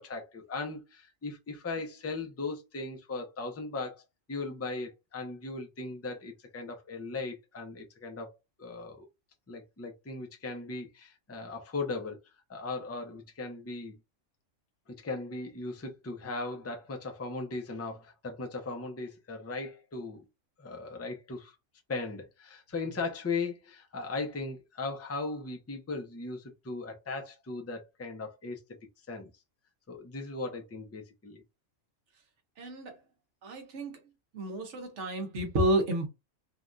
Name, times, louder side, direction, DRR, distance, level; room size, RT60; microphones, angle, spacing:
voice 1, 0.0-4.0 4.3-8.3 8.6-9.1 9.5-12.2 12.5-14.0 15.0-20.2 20.6-21.6 21.9-28.6 29.1-29.3 29.9-31.4, left 3 dB, 20° left, 0.3 m, -38 dB
voice 2, 32.6-32.9 33.4-34.0 34.3-36.1, right 1 dB, 65° right, 1.2 m, -30 dB
3.4 x 2.3 x 2.5 m
omnidirectional pair, 1.3 m